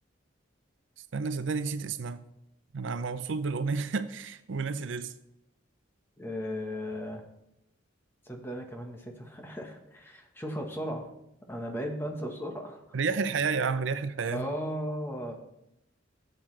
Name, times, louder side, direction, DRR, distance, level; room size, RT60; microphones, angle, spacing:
voice 1, 1.1-2.2 2.7-5.1 12.9-14.4, right 5 dB, 70° right, 12 dB, 0.5 m, -31 dB
voice 2, 6.2-7.2 8.2-11.1 11.5-13.0 14.3-15.3, equal, 10° left, 2 dB, 1.2 m, -36 dB
14.5 x 7.9 x 3.2 m, 0.85 s
head